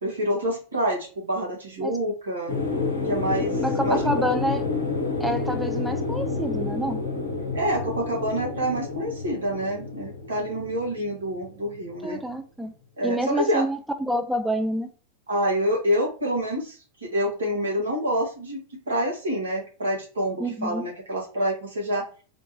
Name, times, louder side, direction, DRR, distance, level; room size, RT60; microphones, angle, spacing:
voice 1, 0.0-2.5 3.0-4.4 7.5-12.2 13.0-13.6 15.3-18.6 18.9-22.1, equal, 70° right, 1.6 m, -27 dB
sound 1, 2.5-12.2, left 3 dB, 75° left, 0.7 m, -29 dB
voice 2, 3.6-4.6 5.2-7.0 12.0-12.7 13.0-14.9 20.4-20.8, right 1 dB, 5° right, 0.3 m, -27 dB
3.5 x 2.5 x 2.7 m
figure-of-eight pair, 90°, 0 cm